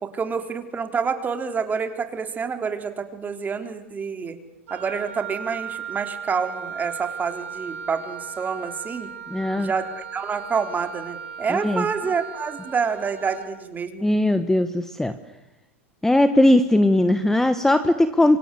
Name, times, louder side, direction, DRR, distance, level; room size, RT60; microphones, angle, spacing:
voice 1, 0.0-4.4 4.7-9.1 9.6-14.0, right 5 dB, 25° right, 7 dB, 3.6 m, -28 dB
Wind instrument woodwind instrument, 4.7-13.5, right 7 dB, 75° right, 5.4 m, -37 dB
voice 2, 9.3-9.7 11.5-11.9 14.0-15.1 16.0-18.4, left 1 dB, 5° left, 11 dB, 1.4 m, -19 dB
27.5 x 25.5 x 8.3 m, 0.95 s
hypercardioid pair, 100°, 7 cm